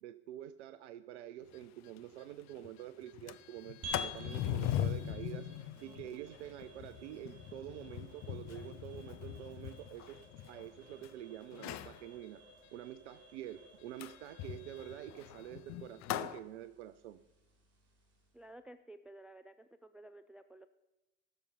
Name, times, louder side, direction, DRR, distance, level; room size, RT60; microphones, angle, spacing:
voice 1, 0.0-5.5 5.8-10.2 10.5-12.4 12.7-17.2, right 12 dB, 70° right, 13 dB, 0.5 m, -47 dB
Sliding door, 1.5-1.6 2.0-2.1 2.4-2.7 3.1-11.1 11.5-12.0 14.0-16.4, left 12 dB, 50° left, 0.6 m, -40 dB
sound 1, 3.8-18.4, left 1 dB, 45° right, 3.1 m, -53 dB
voice 2, 18.3-20.7, right 1 dB, 5° right, 10 dB, 0.4 m, -54 dB
16.0 x 6.9 x 5.6 m, 1.0 s
figure-of-eight pair, 55°, 36 cm